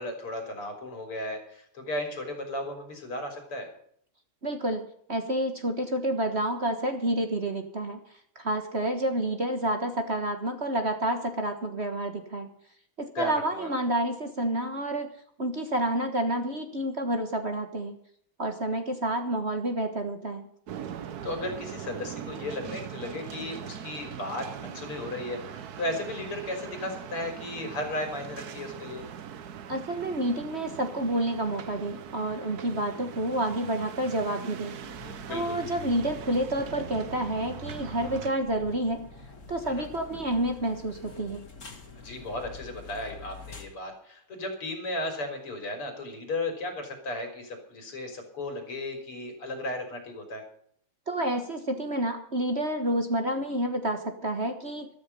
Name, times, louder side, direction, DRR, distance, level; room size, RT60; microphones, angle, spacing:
voice 1, 0.0-3.7 13.1-13.7 21.2-29.0 35.3-35.6 39.6-39.9 42.0-50.4, left 1 dB, 80° left, 5 dB, 4.9 m, -35 dB
voice 2, 4.4-4.8 5.1-8.0 8.3-12.5 13.0-15.1 15.4-18.0 18.4-20.5 29.7-34.7 35.3-39.1 39.5-41.5 51.1-54.9, right 1 dB, 35° right, 6 dB, 1.5 m, -29 dB
sound 1, 20.7-38.3, right 8 dB, 55° right, 1.2 m, -41 dB
sound 2, 34.8-43.6, left 4 dB, 35° left, 2.6 m, -47 dB
14.0 x 13.5 x 5.5 m, 0.64 s
omnidirectional pair, 2.4 m